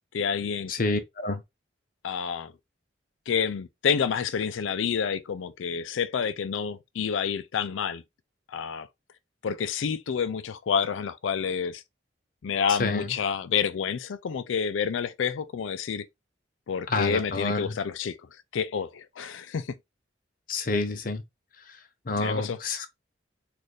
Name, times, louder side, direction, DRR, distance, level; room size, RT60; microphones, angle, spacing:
voice 1, 0.1-0.7 2.0-2.5 3.3-8.0 8.5-8.9 9.4-11.8 12.4-16.0 16.7-18.2 18.5-19.7 22.2-22.6, left 6 dB, 80° left, 0.4 m, -28 dB
voice 2, 0.7-1.4 12.8-13.1 16.9-17.7 20.5-21.2 22.1-22.9, left 3 dB, 45° left, 0.7 m, -28 dB
4.2 x 2.5 x 3.2 m
head